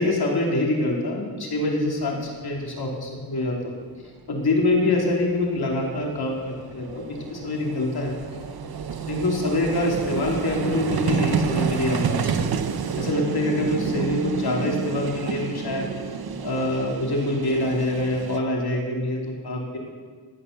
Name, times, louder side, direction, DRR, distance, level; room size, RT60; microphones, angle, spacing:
voice 1, 0.0-3.7 4.3-8.1 9.1-12.5 13.0-15.9 16.4-19.8, left 1 dB, 80° left, -1 dB, 2.8 m, -25 dB
Vehicle, 2.3-2.4 2.6-2.7 4.7-4.8 5.0-18.4, right 6 dB, 75° right, 0.9 m, -29 dB
13.5 x 9.4 x 6.6 m, 1.5 s
cardioid pair, 60°, 38 cm